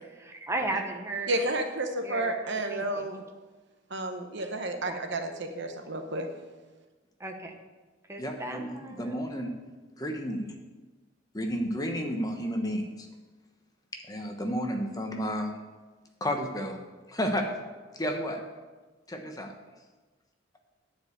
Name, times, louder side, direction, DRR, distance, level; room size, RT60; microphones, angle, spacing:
voice 1, 0.2-1.3 2.0-2.3 2.7-2.8 4.9-5.0 7.2-7.5 8.1-9.2, right 2 dB, 15° right, 3 dB, 1.0 m, -35 dB
voice 2, 1.3-3.3 3.9-6.3, right 2 dB, 65° right, 6 dB, 1.0 m, -31 dB
voice 3, 8.2-9.5 10.0-10.5 11.3-13.1 14.1-15.6 16.2-16.8 17.1-17.5 18.0-18.4 19.1-19.5, equal, 20° left, 3 dB, 1.1 m, -32 dB
10.5 x 4.8 x 8.0 m, 1.3 s
head